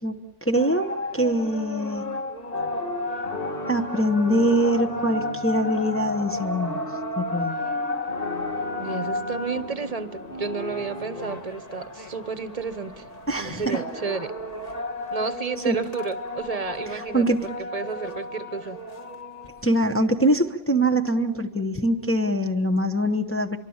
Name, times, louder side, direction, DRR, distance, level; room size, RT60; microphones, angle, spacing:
voice 1, 0.4-2.1 3.7-6.8 7.2-7.6 13.3-13.8 15.6-15.8 16.9-17.4 19.6-23.6, right 1 dB, 10° left, 4 dB, 0.8 m, -23 dB
sound 1, 0.5-19.7, left 2 dB, 30° left, 1.5 m, -33 dB
sound 2, 2.5-11.4, left 1 dB, 45° left, 1.8 m, -37 dB
voice 2, 8.8-13.1 13.4-14.3 15.1-18.8, right 5 dB, 30° right, 11 dB, 1.1 m, -31 dB
24.5 x 23.5 x 7.2 m, 1.1 s
omnidirectional pair, 1.3 m